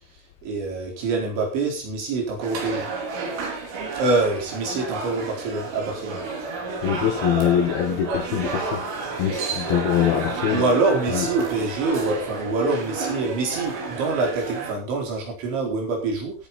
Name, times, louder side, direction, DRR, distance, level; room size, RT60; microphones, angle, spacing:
voice 1, 0.1-2.9 3.9-6.2 10.5-16.5, right 3 dB, 70° right, 0 dB, 6.6 m, -25 dB
sound 1, 2.4-14.7, right 4 dB, 85° right, 6.5 m, -31 dB
voice 2, 6.8-8.8 9.2-10.6 11.1-11.3, left 10 dB, 70° left, 5 dB, 2.5 m, -23 dB
16.0 x 10.5 x 4.2 m, 0.34 s
omnidirectional pair, 5.6 m